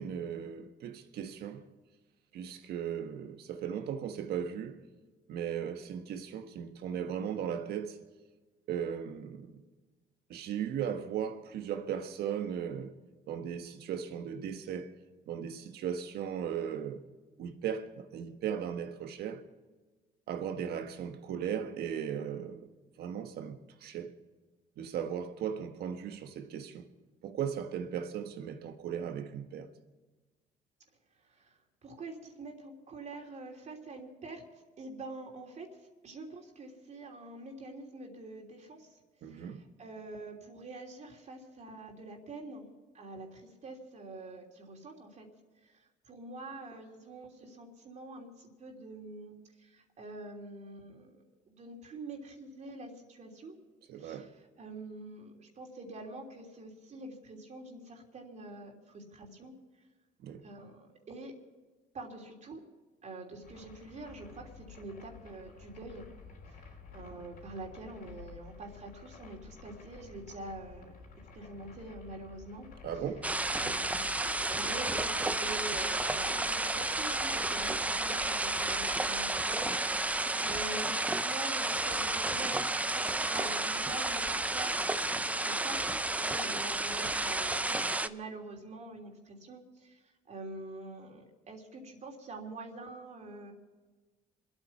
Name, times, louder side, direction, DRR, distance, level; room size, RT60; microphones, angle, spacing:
voice 1, 0.0-1.7 2.3-4.8 5.3-8.0 8.7-9.6 10.3-12.9 13.3-14.9 15.3-17.0 17.4-19.4 20.3-22.7 23.0-24.1 24.8-26.8 27.2-29.7 39.2-39.6 53.9-54.3 60.2-60.5 72.8-73.3 87.0-87.1, right 8 dB, 70° right, 1.5 m, -37 dB
voice 2, 31.2-35.7 36.0-42.7 42.9-45.3 45.6-49.3 49.6-53.5 53.9-59.5 60.4-61.3 61.9-62.6 63.0-66.1 66.5-70.9 71.3-72.7 73.6-93.5, right 2 dB, 45° right, 3.1 m, -46 dB
sound 1, 63.4-80.7, left 5 dB, 55° left, 3.4 m, -52 dB
sound 2, 73.2-88.1, right 2 dB, 10° right, 0.5 m, -31 dB
26.5 x 9.0 x 5.9 m
cardioid pair, 110°, 17 cm